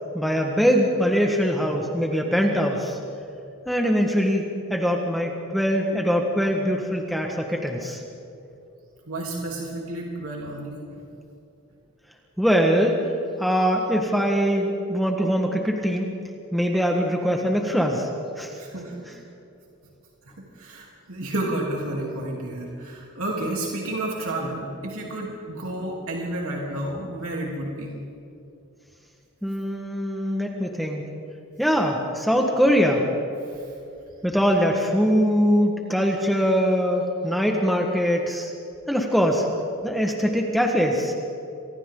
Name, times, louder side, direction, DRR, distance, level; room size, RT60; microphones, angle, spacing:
voice 1, 0.1-3.0 3.7-4.4 4.7-8.0 12.4-13.0 13.4-16.1 16.5-18.1 18.4-18.5 29.4-31.1 31.6-33.0 34.2-38.5 38.9-39.5 39.8-41.1, equal, ahead, 1 dB, 1.5 m, -22 dB
voice 2, 9.1-11.0 18.6-19.2 20.4-28.0 33.5-33.7, right 1 dB, 75° right, -3 dB, 3.4 m, -31 dB
29.0 x 25.5 x 3.9 m, 2.7 s
head